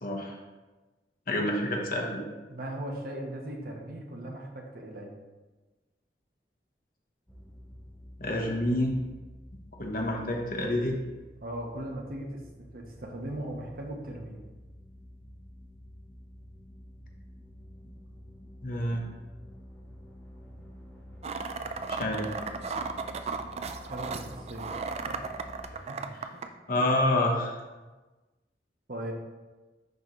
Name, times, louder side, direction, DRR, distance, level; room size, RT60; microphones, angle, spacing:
voice 1, 0.0-0.4 1.3-2.2 8.2-8.9 9.8-11.0 18.6-19.0 21.9-22.3 26.2-26.3 26.7-27.5, left 1 dB, 50° left, 0 dB, 1.1 m, -28 dB
voice 2, 2.5-5.1 11.4-12.4 12.7-14.4 23.9-24.7 25.1-25.2 25.8-26.1 28.9-29.1, right 1 dB, 55° right, 1 dB, 1.1 m, -38 dB
sound 1, 7.3-25.6, equal, 5° left, 1.0 m, -49 dB
sound 2, 21.2-26.5, right 4 dB, 35° right, 0.4 m, -35 dB
10.5 x 4.0 x 3.1 m, 1.2 s
head